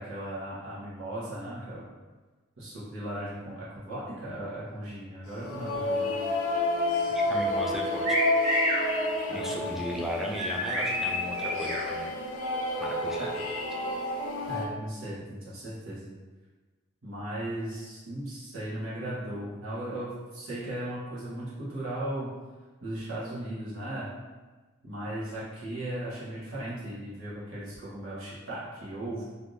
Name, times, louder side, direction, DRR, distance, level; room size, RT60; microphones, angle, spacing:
voice 1, 0.0-1.9 2.6-6.1 9.3-9.8 13.2-13.3 14.5-16.1 17.0-22.3 22.8-24.1 24.8-29.2, right 1 dB, 80° right, -9 dB, 1.1 m, -37 dB
sound 1, 5.3-14.7, left 2 dB, 85° left, 0.5 m, -30 dB
voice 2, 7.1-8.2 9.3-12.1 12.8-13.3, equal, ahead, -2 dB, 0.3 m, -35 dB
sound 2, 8.0-8.8 10.3-11.8, equal, 50° right, 1.2 m, -28 dB
3.3 x 2.6 x 2.6 m, 1.3 s
head